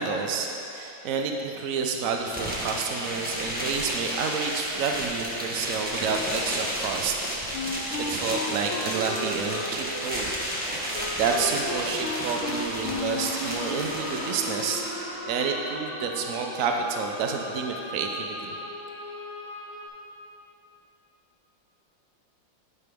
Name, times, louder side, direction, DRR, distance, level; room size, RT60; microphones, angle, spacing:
voice 1, 0.0-7.2 7.4-7.6 8.0-10.4 11.1-14.8 15.2-18.5, right 5 dB, 80° right, 2 dB, 0.7 m, -29 dB
sound 1, 2.2-15.0, equal, 5° right, 0.7 m, -32 dB
Wind instrument woodwind instrument, 7.5-13.4, left 3 dB, 80° left, 1.5 m, -34 dB
sound 2, 11.7-19.9, equal, 35° left, 1.8 m, -38 dB
11.0 x 5.7 x 3.5 m, 2.9 s
omnidirectional pair, 2.1 m